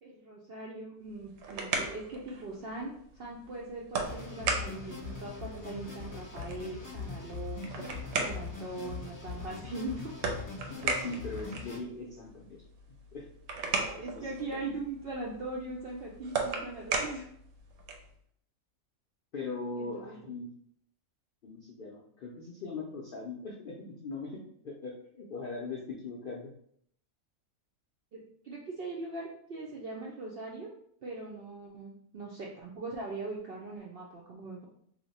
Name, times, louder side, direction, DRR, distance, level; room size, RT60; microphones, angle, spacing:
voice 1, 0.0-10.1 14.0-17.3 19.7-20.2 28.1-30.7 31.0-34.7, right 2 dB, 70° right, -3 dB, 0.5 m, -41 dB
sound 1, 1.1-18.1, right 4 dB, 85° right, 1.1 m, -38 dB
sound 2, 4.0-11.8, left 4 dB, 20° left, 0.6 m, -41 dB
voice 2, 10.8-12.6 13.1-13.3 14.0-14.7 19.3-20.5 21.4-26.5, left 3 dB, 70° left, -2 dB, 0.5 m, -40 dB
2.9 x 2.1 x 4.0 m, 0.67 s
omnidirectional pair, 1.5 m